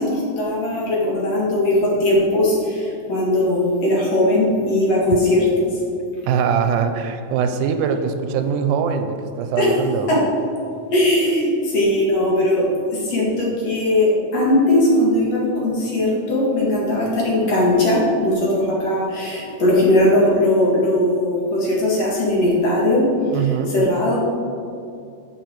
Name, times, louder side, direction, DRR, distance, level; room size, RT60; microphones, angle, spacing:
voice 1, 0.0-5.7 9.6-9.7 10.1-10.2 10.9-12.6 12.9-23.1 23.7-24.2, left 1 dB, 55° left, -5 dB, 3.0 m, -19 dB
voice 2, 6.3-10.1 23.3-23.8, right 7 dB, 85° right, 7 dB, 2.1 m, -22 dB
10.5 x 7.1 x 4.6 m, 2.5 s
omnidirectional pair, 3.7 m